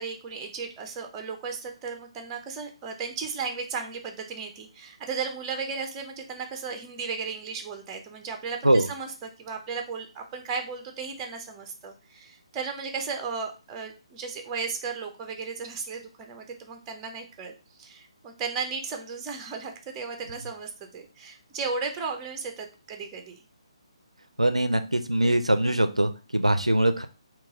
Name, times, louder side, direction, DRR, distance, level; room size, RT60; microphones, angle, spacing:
voice 1, 0.0-23.4, right 5 dB, 15° right, 4 dB, 0.6 m, -35 dB
voice 2, 24.4-27.1, right 1 dB, 90° right, 9 dB, 0.4 m, -22 dB
3.8 x 2.3 x 3.8 m, 0.33 s
figure-of-eight pair, 140°, 3 cm